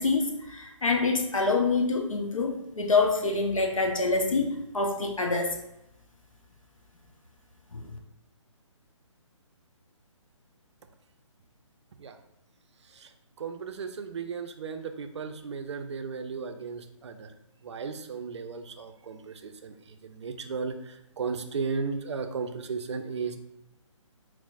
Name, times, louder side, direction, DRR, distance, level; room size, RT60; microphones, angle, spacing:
voice 1, 0.0-5.6 7.7-8.0, left 3 dB, 85° left, 2 dB, 0.7 m, -26 dB
voice 2, 13.4-17.3 17.6-19.8 20.0-23.4, right 5 dB, 60° right, 7 dB, 0.4 m, -35 dB
4.4 x 2.0 x 2.4 m, 0.82 s
figure-of-eight pair, 140°, 17 cm